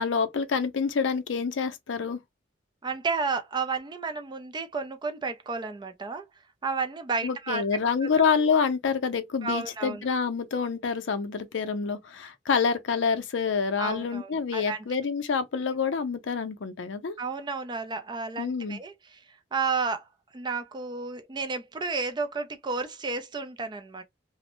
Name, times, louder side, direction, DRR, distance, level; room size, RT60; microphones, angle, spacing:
voice 1, 0.0-2.2 7.2-17.2 18.4-18.8, left 5 dB, 70° left, 0.5 m, -27 dB
voice 2, 2.8-6.3 6.6-7.6 8.0-8.3 9.4-10.0 13.8-14.8 17.2-19.2 19.5-20.0 20.3-24.0, right 4 dB, 25° right, 0.4 m, -32 dB
2.5 x 2.0 x 2.9 m
head